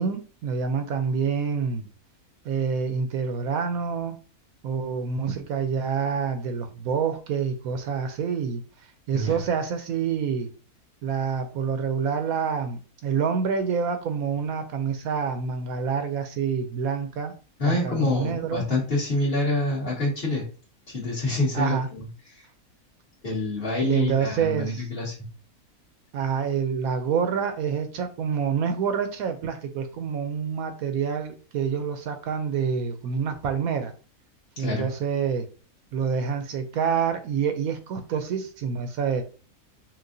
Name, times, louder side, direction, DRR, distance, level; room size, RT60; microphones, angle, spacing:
voice 1, 0.0-1.9 2.4-4.2 4.6-8.6 9.1-10.5 11.0-17.3 17.6-18.6 21.5-21.9 23.8-24.8 26.1-33.9 34.6-35.4 35.9-39.2, right 6 dB, 75° right, 7 dB, 1.0 m, -27 dB
voice 2, 17.6-20.4 20.9-22.0 22.3-22.4 23.2-25.1 34.6-34.9, left 2 dB, 40° left, -5 dB, 1.9 m, -26 dB
5.9 x 2.5 x 2.5 m, 0.37 s
omnidirectional pair, 1.6 m